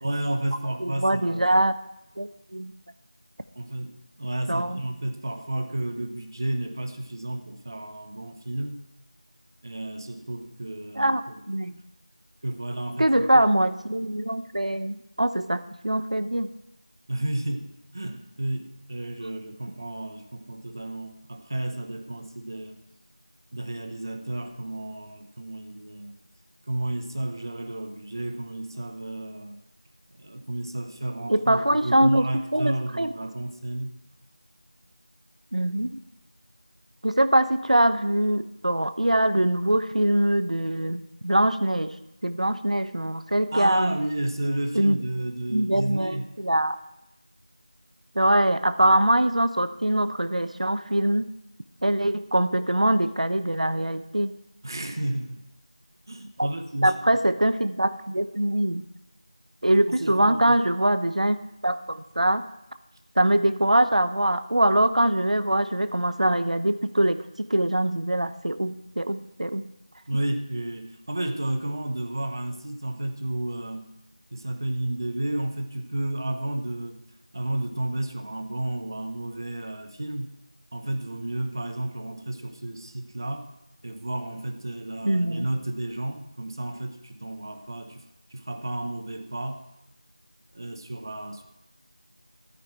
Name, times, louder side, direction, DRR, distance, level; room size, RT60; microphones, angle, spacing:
voice 1, 0.0-1.5 3.5-8.8 9.6-11.2 12.4-13.3 17.1-22.8 23.5-26.2 26.7-29.6 30.1-33.9 43.5-46.2 54.6-55.4 56.1-57.0 59.9-60.6 70.1-73.9 74.3-77.0 77.3-80.3 80.7-83.5 83.8-88.0 88.3-89.6 90.5-91.4, right 1 dB, 35° right, 6 dB, 0.9 m, -32 dB
voice 2, 0.8-1.7 2.2-2.7 4.5-4.8 11.0-11.7 13.0-16.5 31.3-33.1 35.5-35.9 37.0-41.9 42.2-44.0 44.7-45.0 45.5-46.8 48.1-51.3 51.8-54.3 56.4-56.5 56.8-58.8 59.6-61.4 61.6-62.4 63.2-69.6 85.0-85.5, right 1 dB, 85° right, 12 dB, 0.9 m, -23 dB
13.5 x 9.3 x 4.5 m, 0.91 s
figure-of-eight pair, 175°, 4 cm